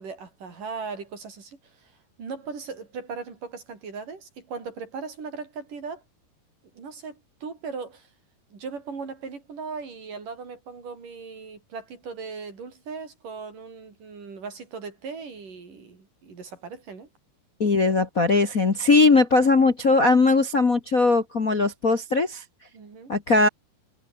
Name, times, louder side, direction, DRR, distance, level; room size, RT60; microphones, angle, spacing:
voice 1, 0.0-6.0 6.7-8.1 8.5-17.1 22.7-23.1, right 5 dB, 65° right, 6.7 m, -38 dB
voice 2, 17.6-22.4 23.1-23.5, left 3 dB, 35° left, 1.6 m, -19 dB
omnidirectional pair, 4.0 m